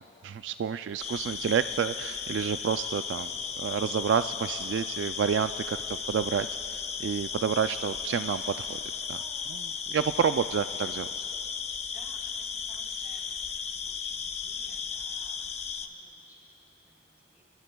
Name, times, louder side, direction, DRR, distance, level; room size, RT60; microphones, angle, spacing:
voice 1, 0.0-3.3 3.6-8.8 9.1-9.2 9.5-11.1, right 7 dB, 70° right, 11 dB, 0.3 m, -29 dB
sound 1, 1.0-15.9, left 6 dB, 35° left, 0.6 m, -35 dB
Cheering, 6.1-6.8 7.1-8.8 9.1-10.9, left 1 dB, 10° left, 1.4 m, -58 dB
voice 2, 10.1-10.6 11.9-17.4, right 1 dB, 10° right, -5 dB, 3.9 m, -59 dB
28.0 x 20.5 x 2.3 m, 2.8 s
head